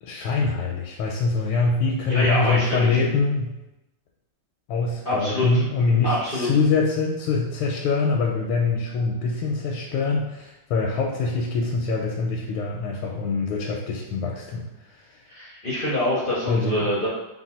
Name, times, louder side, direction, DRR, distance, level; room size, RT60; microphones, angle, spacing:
voice 1, 0.0-3.6 4.7-15.3 16.5-17.1, left 4 dB, 85° left, -1 dB, 1.4 m, -24 dB
voice 2, 2.1-3.0 5.1-5.5 6.0-6.5 15.3-17.1, left 1 dB, 55° left, -7 dB, 0.6 m, -25 dB
3.9 x 2.5 x 4.2 m, 0.96 s
omnidirectional pair, 2.2 m